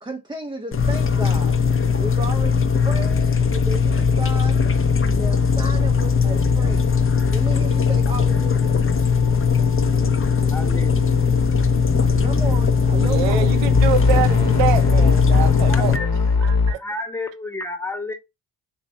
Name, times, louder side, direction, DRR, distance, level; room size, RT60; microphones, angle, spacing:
voice 1, 0.0-1.5 2.0-4.6 5.1-7.0 7.3-8.8 12.2-13.5, right 2 dB, 10° right, 0.5 m, -33 dB
sound 1, 0.7-16.0, left 5 dB, 30° left, 0.6 m, -19 dB
sound 2, 3.1-3.2 3.5-3.7 4.0-16.7, left 4 dB, 60° left, 1.1 m, -26 dB
voice 2, 10.5-11.4 15.7-16.1 16.8-18.1, left 2 dB, 5° left, 0.9 m, -31 dB
voice 3, 12.9-16.0 16.4-17.0, right 9 dB, 85° right, 0.6 m, -26 dB
3.0 x 2.7 x 4.2 m
supercardioid pair, 45°, 43 cm